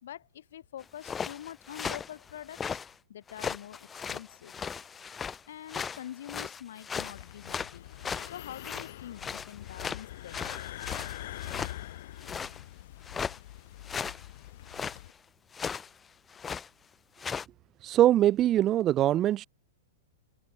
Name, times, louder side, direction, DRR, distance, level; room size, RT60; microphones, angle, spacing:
voice 1, 0.0-2.8 3.1-4.5 5.5-7.9 8.2-10.4, left 11 dB, 65° left, 5.0 m, -45 dB
sound 1, 0.8-2.9 3.3-5.4 5.7-8.9 9.2-11.8 12.2-12.6 13.0-13.4 13.8-14.3 14.7-15.0 15.5-15.9 16.3-16.7 17.2-17.4, left 6 dB, 10° left, 3.3 m, -37 dB
sound 2, 7.0-15.1, left 14 dB, 45° left, 3.3 m, -44 dB
voice 2, 17.8-19.4, right 13 dB, 20° right, 0.4 m, -23 dB
supercardioid pair, 180°, 0 cm